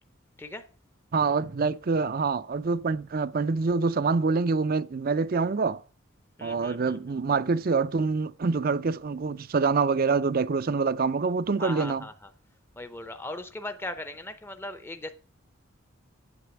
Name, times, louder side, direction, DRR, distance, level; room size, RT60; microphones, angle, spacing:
voice 1, 1.1-5.8 6.4-12.0, right 4 dB, 45° right, 0.5 m, -26 dB
voice 2, 6.4-7.2 11.6-12.3 12.8-15.1, left 2 dB, 10° left, 0.6 m, -38 dB
8.5 x 8.4 x 5.9 m
head